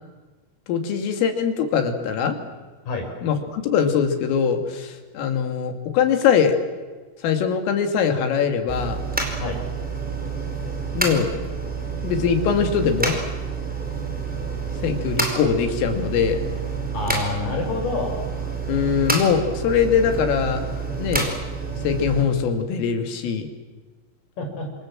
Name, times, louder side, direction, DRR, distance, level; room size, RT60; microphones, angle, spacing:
voice 1, 0.7-2.4 3.2-6.6 7.2-9.0 10.9-11.3 12.0-13.1 14.8-16.4 18.7-20.6 21.0-21.3 21.8-23.5, left 7 dB, 90° left, 5 dB, 5.1 m, -22 dB
sound 1, 8.7-22.2, right 3 dB, ahead, 3.8 m, -28 dB
voice 2, 16.9-18.2 24.4-24.7, left 3 dB, 45° left, 2 dB, 7.4 m, -27 dB
28.0 x 26.5 x 7.6 m, 1.3 s
omnidirectional pair, 5.7 m